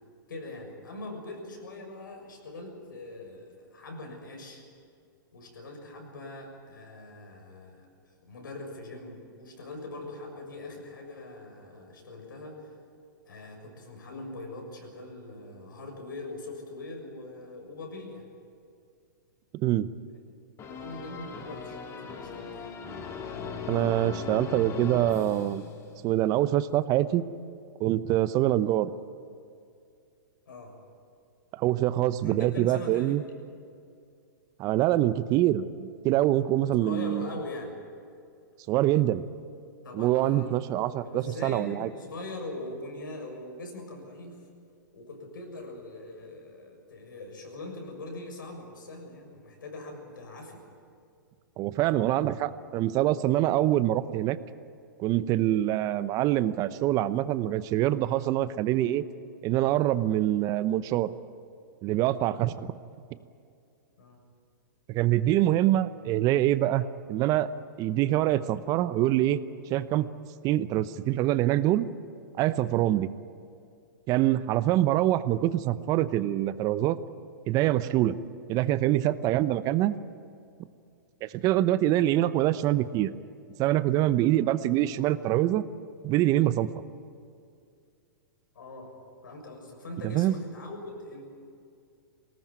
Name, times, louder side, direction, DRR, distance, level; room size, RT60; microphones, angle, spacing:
voice 1, 0.3-4.6 5.3-7.9 8.2-12.7 13.2-18.3 20.7-22.8 30.5-30.8 32.2-33.2 36.8-37.8 39.8-44.5 44.9-50.6 64.0-64.2 88.5-89.0 89.2-91.2, left 2 dB, 80° left, 2 dB, 6.7 m, -42 dB
voice 2, 19.5-19.9 23.7-25.6 26.0-27.2 27.8-28.9 31.5-33.2 34.6-37.3 38.7-39.2 39.9-41.9 51.6-54.4 55.0-59.0 59.4-61.1 61.8-62.7 64.9-67.5 67.8-69.4 69.7-70.1 70.4-71.9 72.4-73.1 74.1-77.0 77.5-78.2 78.5-79.9 81.2-83.1 83.6-85.6 86.0-86.7 90.0-90.4, right 14 dB, 35° right, 14 dB, 0.8 m, -25 dB
sound 1, 20.6-26.2, left 6 dB, 25° left, 2.4 m, -38 dB
21.0 x 18.5 x 9.5 m, 2.4 s
hypercardioid pair, 120°, 11 cm